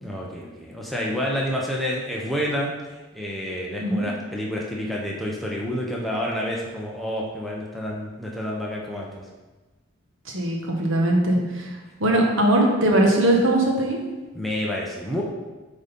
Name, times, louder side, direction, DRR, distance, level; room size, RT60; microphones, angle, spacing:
voice 1, 0.0-2.7 3.1-9.2 14.3-15.2, equal, ahead, -3 dB, 0.9 m, -29 dB
voice 2, 10.2-14.0, right 1 dB, 70° right, 0 dB, 1.4 m, -21 dB
7.9 x 4.0 x 5.4 m, 1.2 s
head